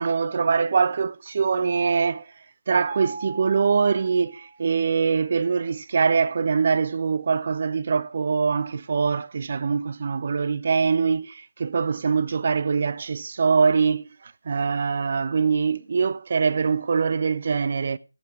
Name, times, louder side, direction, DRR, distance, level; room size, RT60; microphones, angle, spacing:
voice 1, 0.0-2.2 2.7-11.3 11.6-14.0 14.5-18.0, right 5 dB, 45° right, 0.9 m, -23 dB
Mallet percussion, 2.9-4.9, right 4 dB, 5° right, 3.0 m, -39 dB
16.0 x 8.3 x 5.1 m
figure-of-eight pair, 160°, 0 cm